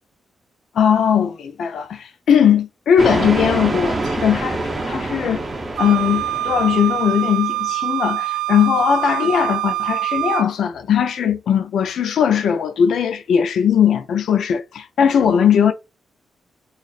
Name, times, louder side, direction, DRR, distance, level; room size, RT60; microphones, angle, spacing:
voice 1, 0.7-5.4 5.8-15.7, left 8 dB, 80° left, 0.5 m, -18 dB
sound 1, 3.0-7.5, right 2 dB, 30° right, 0.7 m, -26 dB
Wind instrument woodwind instrument, 5.8-10.5, right 14 dB, 80° right, 0.4 m, -24 dB
2.5 x 2.5 x 4.0 m
cardioid pair, 110°, 0 cm